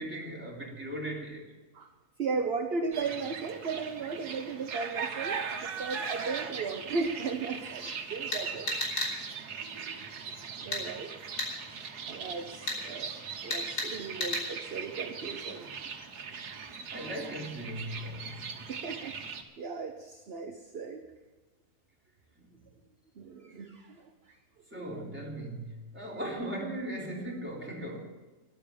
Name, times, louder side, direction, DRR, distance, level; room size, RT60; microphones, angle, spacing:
voice 1, 0.0-1.5 16.6-18.4 24.7-28.0, right 1 dB, 5° right, 3.3 m, -38 dB
voice 2, 2.2-7.8 8.1-8.7 10.6-11.1 12.1-13.2 13.4-15.7 16.6-16.7 18.7-19.1 19.6-21.0 23.2-24.0 24.7-25.0, right 4 dB, 45° right, 1.1 m, -36 dB
sound 1, 2.9-19.4, right 6 dB, 85° right, 1.7 m, -40 dB
sound 2, 8.3-9.1 10.7-10.8 11.4-11.5 12.7-12.8 13.5-13.9 14.2-14.4, left 2 dB, 85° left, 4.0 m, -31 dB
13.5 x 11.5 x 7.2 m
omnidirectional pair, 1.6 m